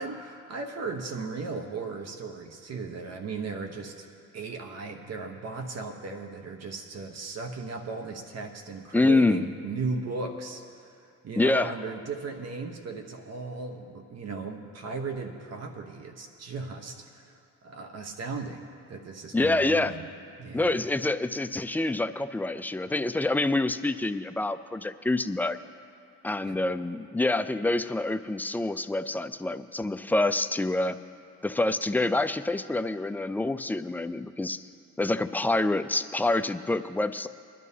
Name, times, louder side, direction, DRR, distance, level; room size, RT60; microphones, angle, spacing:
voice 1, 0.0-4.1 4.3-10.9 11.2-17.3 17.6-20.0 20.4-20.8 26.4-26.6, right 4 dB, 60° right, 4 dB, 1.0 m, -36 dB
voice 2, 8.9-9.5 11.4-11.7 19.3-19.9 20.5-25.6 26.2-31.0 31.4-34.6 35.0-37.3, left 2 dB, 5° left, 11 dB, 0.3 m, -26 dB
22.0 x 11.0 x 2.8 m, 2.4 s
cardioid pair, 90°, 30 cm